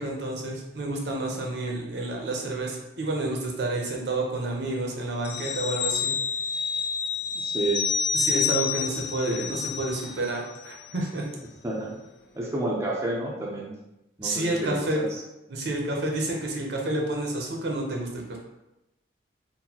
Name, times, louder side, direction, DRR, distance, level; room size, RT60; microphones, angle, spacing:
voice 1, 0.0-6.1 8.1-11.3 14.2-15.0 15.5-18.4, right 2 dB, 70° right, 0 dB, 0.6 m, -29 dB
sound 1, 5.2-10.4 10.7-10.8, left 6 dB, 60° left, 0.3 m, -28 dB
voice 2, 7.4-7.8 9.2-9.4 11.6-11.9 12.3-13.7 14.2-15.1, right 2 dB, 15° right, -4 dB, 0.5 m, -30 dB
3.8 x 2.1 x 2.8 m, 0.94 s
head